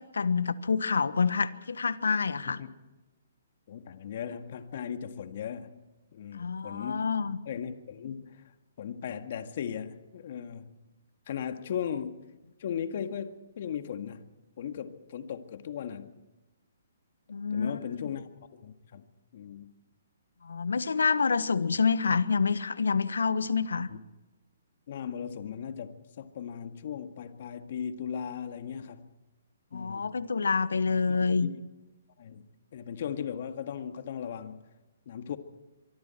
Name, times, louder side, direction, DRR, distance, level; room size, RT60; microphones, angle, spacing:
voice 1, 0.0-2.6 6.3-7.4 17.3-18.1 20.4-23.9 29.7-31.5, left 5 dB, 80° left, 1.3 m, -27 dB
voice 2, 3.7-5.8 6.1-7.1 7.5-8.4 8.8-10.8 11.3-12.3 12.6-16.1 17.5-18.3 18.6-19.0 19.3-19.7 23.9-24.0 24.9-29.1 29.7-30.1 31.0-31.6 32.2-34.7 35.1-35.4, left 8 dB, 55° left, 1.9 m, -37 dB
24.5 x 24.0 x 4.5 m
hypercardioid pair, 140°, 0 cm